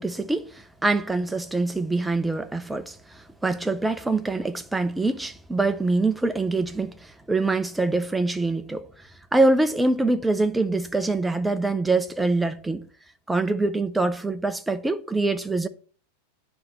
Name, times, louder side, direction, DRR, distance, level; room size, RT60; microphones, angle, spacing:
voice 1, 0.0-8.8 9.3-12.9 13.3-15.7, right 2 dB, 5° right, 0.6 m, -24 dB
9.7 x 3.5 x 6.6 m
figure-of-eight pair, 90°, 0 cm